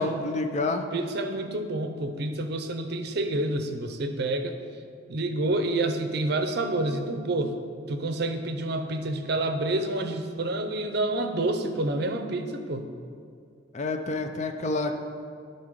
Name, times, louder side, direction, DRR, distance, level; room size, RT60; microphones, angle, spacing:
voice 1, 0.0-0.9 13.7-15.0, left 2 dB, 40° left, 6 dB, 0.5 m, -28 dB
voice 2, 0.9-4.6 5.1-7.5 7.9-12.9, right 2 dB, 60° right, 7 dB, 0.6 m, -28 dB
11.0 x 3.9 x 5.1 m, 2.3 s
head